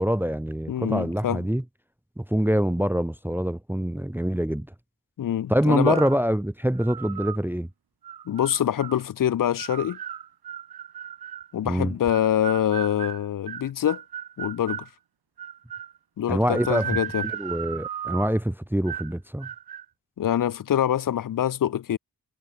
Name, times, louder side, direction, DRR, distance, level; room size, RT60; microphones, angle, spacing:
voice 1, 0.0-1.6 2.2-4.7 5.5-7.7 11.6-11.9 16.3-17.0 17.3-19.5, equal, 5° right, 1.0 m, -25 dB
voice 2, 0.7-1.4 5.2-6.0 8.3-10.0 11.5-14.0 14.4-14.9 16.2-17.2 20.2-22.0, left 10 dB, 60° left, 0.6 m, -25 dB
sound 1, 5.8-6.2 6.8-7.4 8.0-9.0 9.6-11.5 12.1-14.9 15.4-16.0 16.4-18.4 18.9-19.1 19.4-19.8, right 9 dB, 80° right, 1.1 m, -36 dB
cardioid pair, 65°, 36 cm